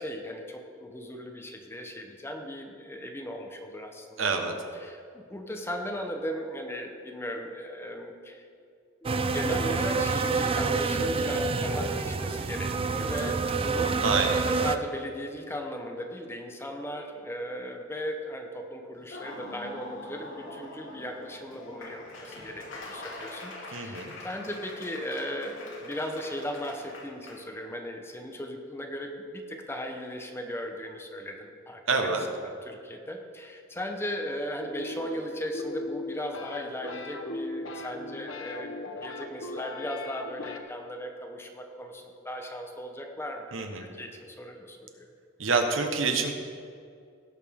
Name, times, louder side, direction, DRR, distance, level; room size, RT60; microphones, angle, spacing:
voice 1, 0.0-4.4 4.7-8.4 9.0-14.1 14.5-43.5 43.8-45.1, equal, 10° left, 3 dB, 0.8 m, -37 dB
voice 2, 4.2-4.5 14.0-14.3 23.7-24.1 31.9-32.2 43.5-43.8 45.4-46.3, right 4 dB, 75° right, 5 dB, 1.1 m, -26 dB
sound 1, 9.0-14.8, right 4 dB, 30° right, 0.4 m, -27 dB
Laughter / Applause, 19.0-27.4, left 2 dB, 70° left, 2.0 m, -44 dB
sound 2, 34.6-40.6, left 2 dB, 85° left, 0.9 m, -38 dB
17.0 x 6.6 x 3.6 m, 2.3 s
head